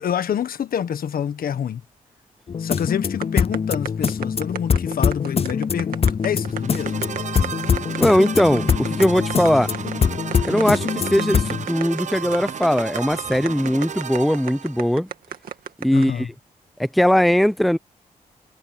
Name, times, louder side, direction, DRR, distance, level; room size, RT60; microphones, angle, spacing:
voice 1, 0.0-1.8 2.6-7.0 15.9-16.3, left 8 dB, 80° left, 1.5 m, -27 dB
sound 1, 2.5-11.7, left 6 dB, 40° left, 0.5 m, -23 dB
sound 2, 3.2-16.1, right 8 dB, 80° right, 2.0 m, -33 dB
sound 3, 6.4-15.0, right 7 dB, 55° right, 0.8 m, -33 dB
voice 2, 8.0-9.7 10.4-15.1 15.8-16.3 16.8-17.8, equal, ahead, 0.7 m, -19 dB
cardioid pair, 60°, 15 cm